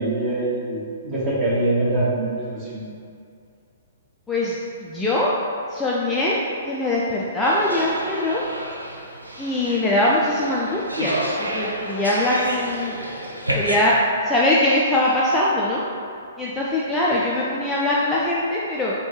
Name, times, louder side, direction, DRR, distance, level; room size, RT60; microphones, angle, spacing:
voice 1, 0.0-2.8, right 2 dB, 20° right, -8 dB, 1.4 m, -24 dB
voice 2, 4.3-5.3 5.7-6.4 6.6-8.4 9.4-13.0 13.5-14.0 14.3-15.8 16.4-18.9, left 1 dB, 10° left, -6 dB, 0.4 m, -22 dB
sound 1, 7.4-13.8, right 1 dB, 85° right, 0.5 m, -30 dB
4.3 x 2.3 x 4.7 m, 2.4 s
figure-of-eight pair, 115°, 0 cm